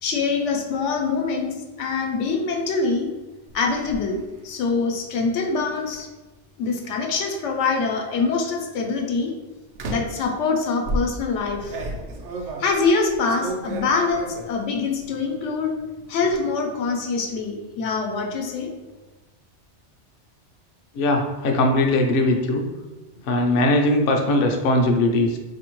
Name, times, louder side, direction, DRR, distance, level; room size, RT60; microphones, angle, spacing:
voice 1, 0.0-3.1 3.5-6.1 6.6-9.3 9.9-11.9 12.6-15.8 16.1-18.7, left 4 dB, 80° left, 2 dB, 0.9 m, -24 dB
sound 1, 3.5-4.0 5.8-6.0 6.8-7.6 8.3-8.6 9.8-10.3 10.9-14.6 15.0-15.5 15.8-16.4, right 1 dB, 80° right, 0.9 m, -33 dB
voice 2, 20.9-22.7 23.2-25.4, left 1 dB, 60° left, 2 dB, 0.6 m, -20 dB
4.3 x 2.7 x 2.9 m, 1.2 s
omnidirectional pair, 1.2 m